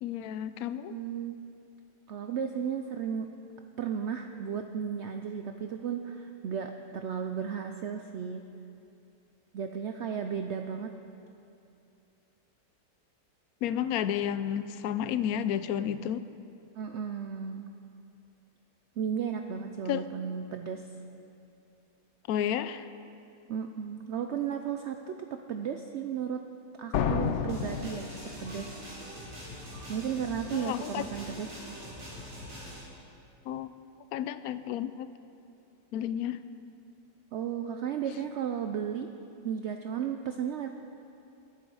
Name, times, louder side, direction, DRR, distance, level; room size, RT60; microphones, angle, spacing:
voice 1, 0.0-0.9 13.6-16.2 19.9-20.0 22.3-22.8 30.5-31.0 33.5-33.7 34.1-35.1 35.9-36.4, left 10 dB, 70° left, 13 dB, 0.9 m, -31 dB
voice 2, 0.9-1.4 2.1-3.3 3.8-8.5 9.5-10.9 16.7-17.6 19.0-20.9 23.5-26.4 26.8-28.1 28.4-28.8 29.9-31.5 37.3-39.1 39.4-40.7, right 7 dB, 75° right, 6 dB, 0.6 m, -34 dB
sound 1, 26.9-28.7, left 8 dB, 90° left, 0.6 m, -31 dB
sound 2, 27.5-32.8, equal, 50° right, 3.6 m, -43 dB
21.0 x 9.2 x 4.8 m, 2.7 s
omnidirectional pair, 1.9 m